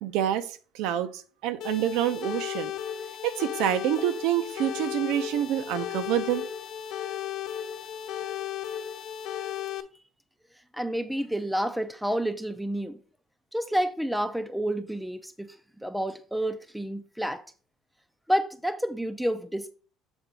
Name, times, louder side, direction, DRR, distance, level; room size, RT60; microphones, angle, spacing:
voice 1, 0.0-2.7 3.2-6.5, right 11 dB, 70° right, 0.7 m, -27 dB
High-Low Siren, 1.6-9.8, left 10 dB, 55° left, 0.9 m, -35 dB
voice 2, 10.7-13.0 13.5-17.4 18.3-19.7, equal, ahead, 0.4 m, -29 dB
7.2 x 3.9 x 4.7 m
cardioid pair, 170°, 0 cm